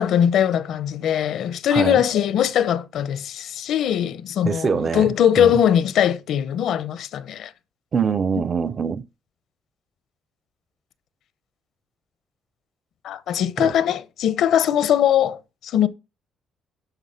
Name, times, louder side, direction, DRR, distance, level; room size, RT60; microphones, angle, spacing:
voice 1, 0.0-7.5 13.0-15.9, left 9 dB, 75° left, 0.7 m, -21 dB
voice 2, 1.7-2.0 4.4-5.6 7.9-9.0 13.6-13.7, right 6 dB, 40° right, 0.6 m, -24 dB
11.5 x 4.9 x 5.6 m
cardioid pair, 90°, 0 cm